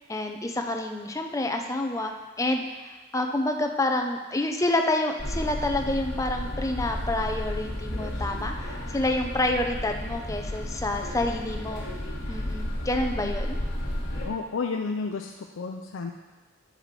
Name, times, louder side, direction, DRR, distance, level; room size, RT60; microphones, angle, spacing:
voice 1, 0.1-11.9 12.3-13.6, left 1 dB, 15° left, 4 dB, 0.5 m, -28 dB
sound 1, 5.2-14.3, left 1 dB, 55° left, 1.5 m, -32 dB
voice 2, 14.3-16.1, left 4 dB, 75° left, 2 dB, 0.5 m, -31 dB
9.0 x 4.9 x 5.1 m, 1.2 s
head